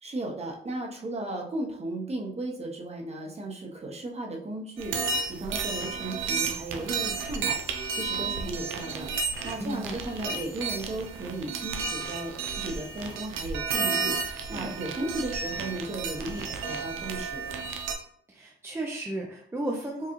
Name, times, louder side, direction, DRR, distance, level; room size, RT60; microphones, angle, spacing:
voice 1, 0.0-9.1 9.4-17.4, right 2 dB, 30° right, 1 dB, 0.9 m, -35 dB
sound 1, 4.8-17.9, right 4 dB, 90° right, 0.5 m, -32 dB
voice 2, 9.6-10.0 14.5-14.7 18.3-20.1, right 1 dB, 10° right, 0 dB, 0.5 m, -34 dB
4.6 x 2.3 x 3.0 m, 0.63 s
cardioid pair, 90°, 20 cm